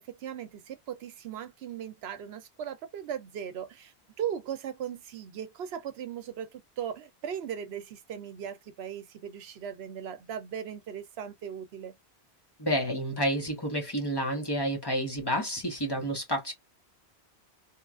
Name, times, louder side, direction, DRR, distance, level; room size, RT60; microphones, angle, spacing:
voice 1, 0.0-11.9, right 9 dB, 75° right, 0.8 m, -38 dB
voice 2, 12.6-16.5, equal, 25° left, 0.9 m, -30 dB
2.9 x 2.3 x 2.3 m
omnidirectional pair, 1.1 m